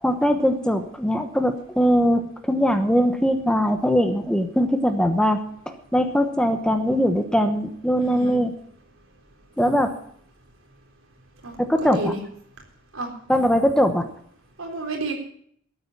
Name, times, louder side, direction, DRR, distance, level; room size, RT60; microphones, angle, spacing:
voice 1, 0.0-5.4 5.7-8.5 9.6-9.9 11.6-12.1 13.3-14.1, equal, 5° left, 7 dB, 1.0 m, -21 dB
voice 2, 8.0-8.4 11.4-12.2 12.9-13.1 14.6-15.1, right 2 dB, 75° right, 1 dB, 3.8 m, -31 dB
13.5 x 8.8 x 7.2 m, 0.63 s
head